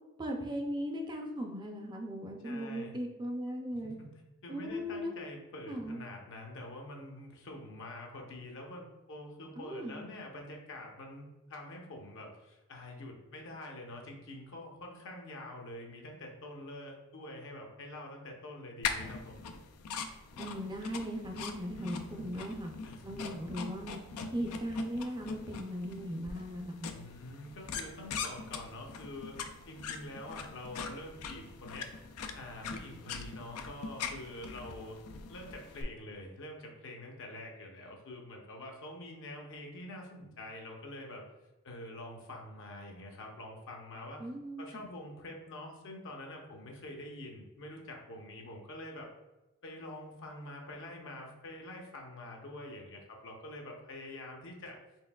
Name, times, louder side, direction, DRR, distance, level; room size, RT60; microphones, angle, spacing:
voice 1, 0.2-4.0 4.5-5.1 5.7-6.0 9.6-10.1 20.4-22.7 23.0-24.0 24.3-26.9 44.2-44.9, equal, 20° right, 2 dB, 0.4 m, -38 dB
voice 2, 2.4-3.0 3.7-19.4 21.8-22.3 22.8-23.0 23.3-23.4 26.9-29.4 29.7-31.9 32.3-35.0 35.3-41.2 41.6-44.3 44.6-49.1 49.6-54.8, left 1 dB, 60° left, 1 dB, 0.8 m, -46 dB
sound 1, 18.8-35.8, left 5 dB, 90° left, 0.4 m, -42 dB
4.4 x 3.3 x 2.3 m, 1.1 s
head